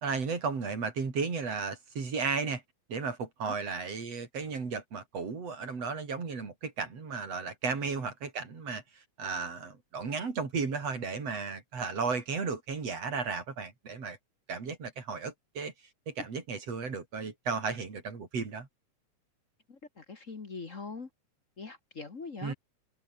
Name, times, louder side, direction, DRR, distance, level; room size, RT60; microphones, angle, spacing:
voice 1, 0.0-2.6 2.9-14.2 14.5-15.7 16.1-18.7 22.4-22.5, right 5 dB, 55° right, 5.1 m, -34 dB
voice 2, 19.7-21.1 21.6-22.5, left 4 dB, 35° left, 1.5 m, -42 dB
omnidirectional pair, 3.5 m